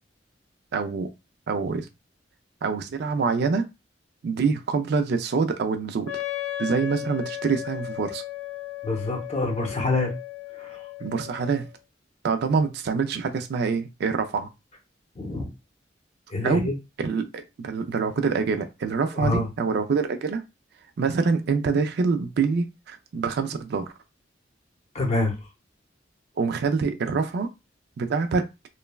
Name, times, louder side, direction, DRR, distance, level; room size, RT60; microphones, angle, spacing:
voice 1, 0.7-1.1 1.5-1.9 2.6-3.7 4.2-6.2 6.6-8.2 11.0-11.7 12.2-14.5 16.4-16.7 17.0-20.4 21.0-23.9 26.4-27.5 28.0-28.4, right 5 dB, 60° right, 0.3 m, -25 dB
Wind instrument woodwind instrument, 6.0-11.7, left 13 dB, 85° left, 0.4 m, -35 dB
voice 2, 8.8-10.1 10.6-10.7 15.2-15.5 16.3-16.7 19.2-19.5 24.9-25.3, left 2 dB, 35° left, 0.7 m, -26 dB
3.1 x 2.1 x 2.2 m
head